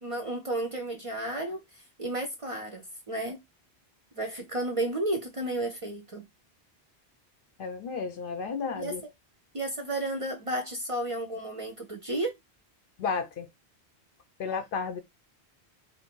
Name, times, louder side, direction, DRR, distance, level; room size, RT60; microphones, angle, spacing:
voice 1, 0.0-3.4 4.2-6.2 8.7-8.9 9.5-12.3, right 1 dB, 40° right, 0.5 m, -32 dB
voice 2, 7.6-9.0 13.0-13.5 14.4-15.0, left 5 dB, 60° left, 0.7 m, -32 dB
2.6 x 2.5 x 3.6 m
omnidirectional pair, 1.1 m